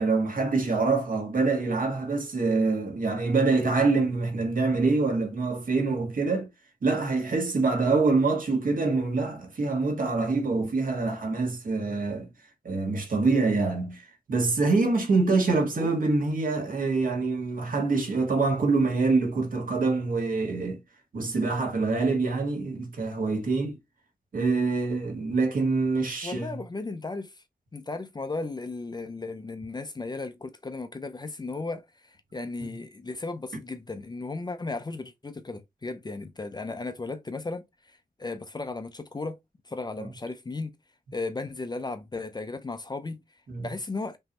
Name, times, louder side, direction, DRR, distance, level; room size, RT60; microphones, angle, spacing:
voice 1, 0.0-6.5 6.8-12.3 12.6-20.8 21.1-23.8 24.3-26.6 40.0-40.1 43.5-43.7, right 3 dB, 60° right, 1.6 m, -25 dB
voice 2, 26.2-27.3 27.7-37.6 38.2-39.4 39.7-40.7 41.1-43.2 43.6-44.2, left 3 dB, 25° left, 0.5 m, -35 dB
5.4 x 3.1 x 2.9 m
wide cardioid pair, 160°, 16 cm